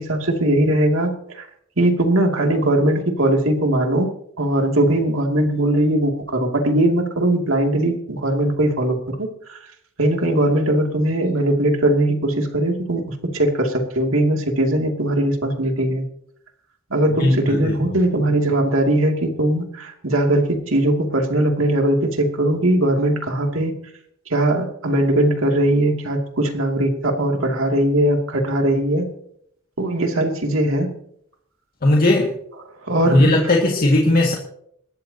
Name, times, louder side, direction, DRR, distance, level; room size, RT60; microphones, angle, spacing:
voice 1, 0.0-1.5 1.8-4.1 4.4-9.6 10.0-16.1 16.9-23.7 24.3-29.1 29.8-30.9 32.9-33.3, right 1 dB, 70° right, 2 dB, 2.7 m, -20 dB
voice 2, 17.2-17.8 31.8-32.3 33.1-34.3, left 1 dB, 45° left, -1 dB, 2.2 m, -17 dB
28.0 x 13.5 x 2.9 m, 0.72 s
head